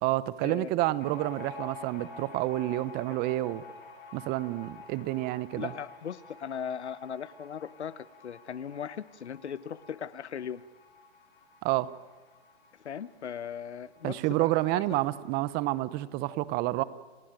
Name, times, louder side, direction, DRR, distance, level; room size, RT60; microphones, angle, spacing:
voice 1, 0.0-3.6 4.1-5.7 11.6-11.9 14.0-16.8, right 17 dB, 30° right, 17 dB, 1.0 m, -29 dB
sound 1, 1.0-14.1 14.4-14.5 14.8-15.5, left 3 dB, 50° left, 7.1 m, -49 dB
voice 2, 5.6-10.6 12.7-15.0, left 8 dB, 90° left, 17 dB, 1.3 m, -38 dB
30.0 x 19.0 x 9.1 m, 1.3 s
hypercardioid pair, 135°, 33 cm